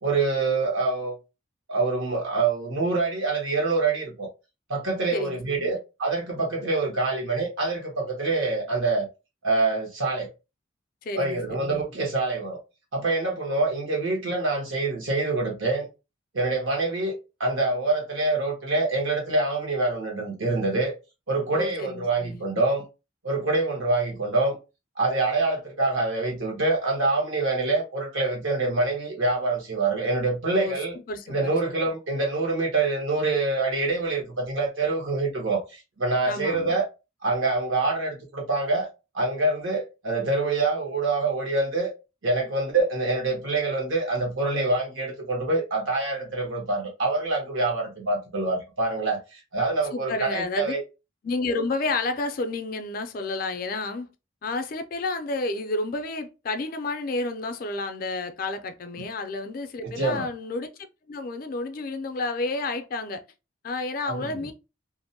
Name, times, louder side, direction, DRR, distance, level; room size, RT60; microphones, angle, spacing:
voice 1, 0.0-1.2 1.7-4.3 4.7-9.1 9.4-10.3 11.2-12.6 12.9-15.9 16.3-17.1 17.4-20.9 21.3-22.8 23.2-24.6 25.0-31.0 31.3-36.8 37.2-38.9 39.1-41.9 42.2-50.8 59.8-60.3 64.1-64.5, right 3 dB, 85° right, 1.0 m, -25 dB
voice 2, 5.1-5.8 11.0-11.8 21.5-22.4 30.5-30.8 31.1-31.6 36.3-36.7 49.9-50.8 51.2-54.1 54.4-60.7 61.1-63.2 63.6-64.5, left 3 dB, 45° left, 0.3 m, -30 dB
2.5 x 2.0 x 2.6 m
head